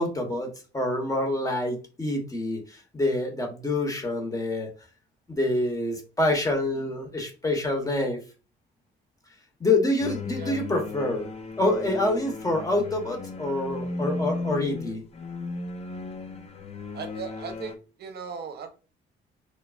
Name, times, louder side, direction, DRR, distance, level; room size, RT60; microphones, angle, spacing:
voice 1, 0.0-4.7 5.3-8.2 9.6-11.3 11.6-15.0, left 2 dB, 15° left, 2 dB, 0.9 m, -26 dB
sound 1, 10.0-17.8, left 3 dB, 30° left, 0.4 m, -35 dB
voice 2, 16.9-18.7, right 6 dB, 55° right, 6 dB, 0.6 m, -37 dB
3.1 x 2.0 x 2.3 m, 0.33 s
cardioid pair, 90°, 20 cm